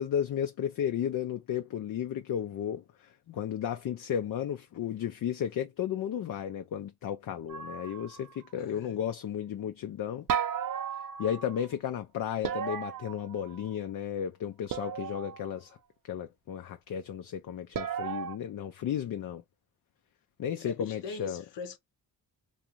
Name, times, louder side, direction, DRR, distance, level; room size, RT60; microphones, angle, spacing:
voice 1, 0.0-10.3 11.2-15.8 16.0-19.4 20.4-21.4, left 9 dB, 55° left, 0.5 m, -34 dB
sound 1, 7.5-8.4 10.3-11.7 12.4-13.7 14.7-15.5 17.7-18.4, right 8 dB, 55° right, 0.5 m, -35 dB
voice 2, 8.5-9.0 20.6-21.8, left 5 dB, 80° left, 0.8 m, -42 dB
2.5 x 2.5 x 2.9 m
cardioid pair, 50°, 42 cm